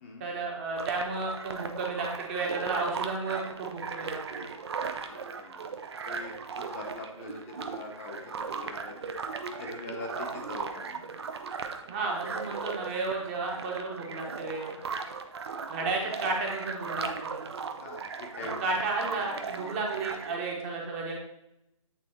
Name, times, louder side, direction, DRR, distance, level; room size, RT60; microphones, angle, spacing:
voice 1, 0.2-4.4 11.9-14.8 15.7-17.4 18.6-21.1, right 3 dB, 25° right, -1 dB, 1.2 m, -33 dB
sound 1, 0.8-20.4, right 5 dB, 50° right, 0.7 m, -37 dB
voice 2, 5.1-5.7 6.0-9.1 9.6-11.1 15.6-15.8 17.7-18.6 19.5-19.7, left 3 dB, 25° left, 0 dB, 0.8 m, -43 dB
8.6 x 4.2 x 3.0 m, 0.84 s
hypercardioid pair, 155°, 17 cm